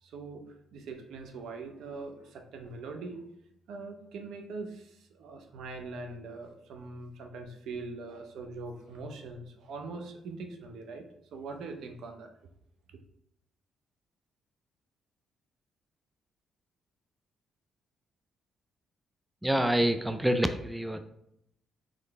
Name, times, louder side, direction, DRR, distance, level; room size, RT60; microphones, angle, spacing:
voice 1, 0.0-0.4 0.7-3.2 3.7-11.0 11.3-12.3, right 3 dB, 75° right, 4 dB, 0.6 m, -42 dB
voice 2, 19.4-21.0, right 1 dB, 5° right, 9 dB, 0.3 m, -27 dB
3.9 x 3.1 x 3.4 m, 0.75 s
cardioid pair, 90°, 0 cm